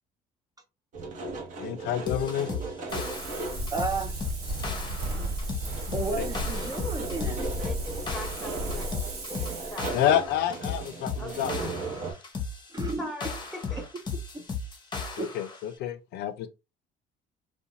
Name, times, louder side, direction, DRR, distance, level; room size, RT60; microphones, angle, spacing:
sound 1, 0.9-3.8 4.1-4.2 4.5-5.4 5.6-12.1, right 3 dB, 50° right, 0.8 m, -37 dB
voice 1, 1.6-2.5 5.9-6.2 9.9-11.5 15.2-16.5, left 11 dB, 80° left, 0.5 m, -28 dB
sound 2, 2.1-15.6, left 4 dB, 25° left, 0.7 m, -36 dB
Wind, 2.9-9.9, right 1 dB, 70° right, 1.2 m, -35 dB
voice 2, 3.7-4.1 5.1-5.3 5.9-7.5 12.7-13.1 14.3-14.4 15.2-15.3, right 3 dB, 20° right, 0.5 m, -32 dB
voice 3, 7.6-10.2 11.2-11.9 13.0-13.9, left 1 dB, ahead, 1.0 m, -42 dB
2.5 x 2.2 x 2.8 m
cardioid pair, 110°, 17 cm